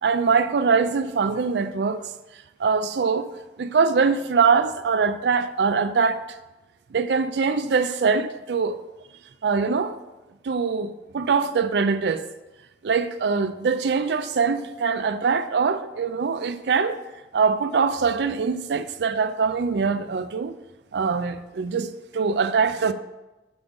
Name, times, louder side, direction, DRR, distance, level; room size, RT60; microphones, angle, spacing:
voice 1, 0.0-2.1 2.6-3.3 3.6-6.4 6.9-8.8 9.4-10.0 10.4-12.3 12.8-17.0 17.3-20.6 20.9-22.9, right 5 dB, 75° right, 0.4 m, -23 dB
6.9 x 3.7 x 5.2 m
head